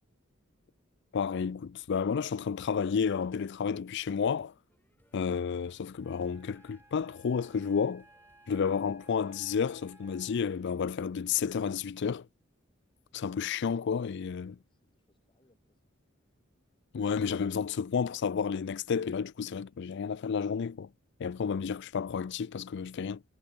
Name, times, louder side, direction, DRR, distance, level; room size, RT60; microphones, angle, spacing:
voice 1, 1.1-1.6 1.9-4.5 5.1-8.0 8.5-12.3 13.1-14.6 16.9-20.9 21.2-23.2, left 6 dB, 60° left, 0.4 m, -31 dB
sound 1, 4.7-12.1, left 1 dB, 10° left, 4.4 m, -69 dB
Wind instrument woodwind instrument, 6.0-10.6, right 2 dB, 10° right, 4.1 m, -60 dB
voice 2, 14.7-16.0, left 2 dB, 25° left, 3.7 m, -69 dB
head